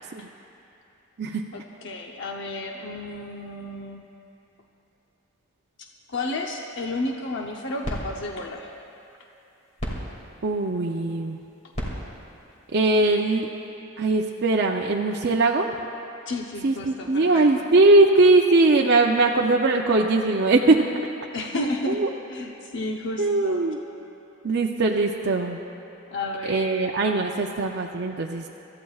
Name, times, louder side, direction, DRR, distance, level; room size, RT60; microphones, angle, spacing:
voice 1, 1.5-4.0 6.1-8.7 16.3-17.6 21.3-23.6 26.1-27.0, left 2 dB, 60° left, 1 dB, 0.8 m, -32 dB
sound 1, 7.3-13.7, equal, 30° left, 2.3 m, -38 dB
voice 2, 10.4-11.4 12.7-13.5 14.0-15.7 16.6-20.9 21.9-22.1 23.2-23.8 24.4-25.6 26.5-28.5, right 2 dB, 50° right, 0 dB, 0.6 m, -20 dB
25.5 x 14.0 x 2.4 m, 2.8 s
head